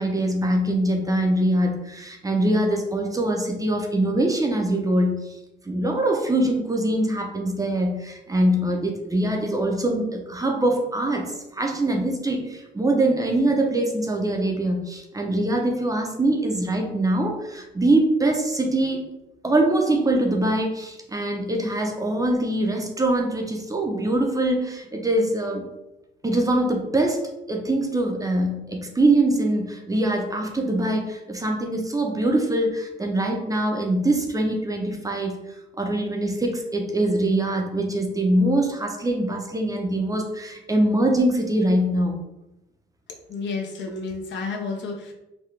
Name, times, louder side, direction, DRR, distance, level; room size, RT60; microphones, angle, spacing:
voice 1, 0.0-5.4 5.7-19.1 19.4-25.6 26.2-27.2 27.5-35.4 35.8-42.1 43.9-44.0, right 1 dB, 15° right, 2 dB, 0.6 m, -23 dB
voice 2, 43.3-45.1, left 4 dB, 65° left, 1 dB, 0.8 m, -31 dB
3.9 x 2.2 x 3.2 m, 0.94 s
cardioid pair, 90°, 20 cm